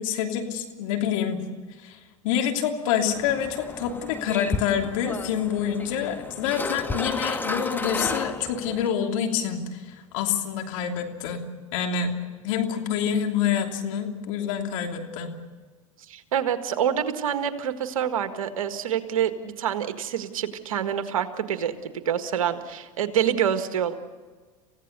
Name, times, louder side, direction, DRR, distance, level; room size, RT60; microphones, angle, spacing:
voice 1, 0.0-1.4 1.8-2.0 2.2-9.8 10.1-11.5 11.7-12.1 12.4-15.3, left 8 dB, 70° left, 3 dB, 3.0 m, -27 dB
sound 1, 3.1-8.9, left 3 dB, 10° left, 1.5 m, -33 dB
voice 2, 16.1-23.9, right 9 dB, 80° right, 9 dB, 1.7 m, -27 dB
28.0 x 16.0 x 6.8 m, 1.4 s
hypercardioid pair, 90°, 17 cm